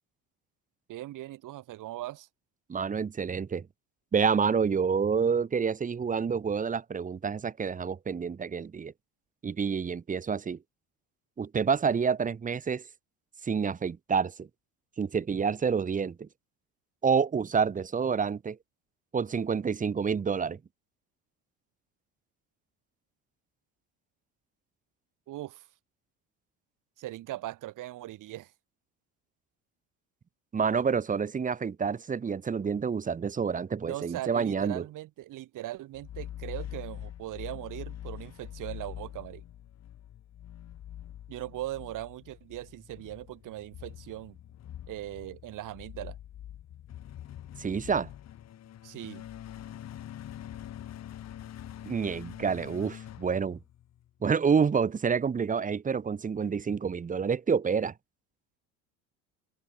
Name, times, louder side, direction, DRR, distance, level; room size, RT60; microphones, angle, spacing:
voice 1, 0.9-2.3 25.3-25.6 27.0-28.5 33.8-39.4 41.3-44.4 44.9-46.2 48.8-49.2, right 15 dB, 60° right, 5.7 m, -39 dB
voice 2, 2.7-3.7 4.1-8.9 9.4-10.6 11.4-12.8 13.4-14.5 15.0-16.3 17.0-18.6 19.1-20.6 30.5-34.8 47.6-48.1 51.8-53.6 54.2-57.9, right 6 dB, 20° right, 1.2 m, -28 dB
sound 1, 35.9-54.1, left 11 dB, 45° left, 3.7 m, -44 dB
open air
cardioid pair, 120°, 35 cm